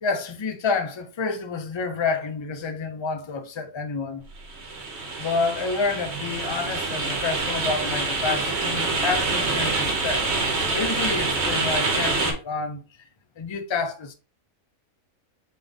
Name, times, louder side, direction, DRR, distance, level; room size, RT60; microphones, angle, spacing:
voice 1, 0.0-4.3 5.2-10.3 10.7-12.8 13.4-14.1, left 4 dB, 45° left, 0.3 m, -28 dB
sound 1, 4.3-12.3, right 3 dB, 55° right, 1.4 m, -26 dB
4.1 x 3.5 x 3.7 m
omnidirectional pair, 1.4 m